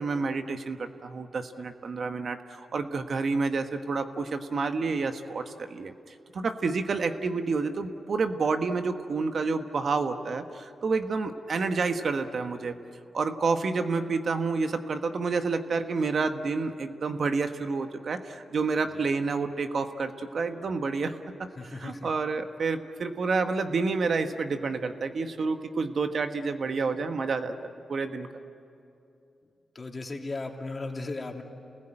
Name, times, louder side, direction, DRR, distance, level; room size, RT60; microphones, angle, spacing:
voice 1, 0.0-5.9 6.3-12.7 13.1-27.6 27.9-28.3, right 4 dB, 65° right, 7 dB, 1.3 m, -29 dB
voice 2, 21.6-22.1 29.7-31.4, left 3 dB, 40° left, 2 dB, 2.9 m, -36 dB
29.0 x 20.0 x 9.0 m, 2.7 s
cardioid pair, 60°, 0 cm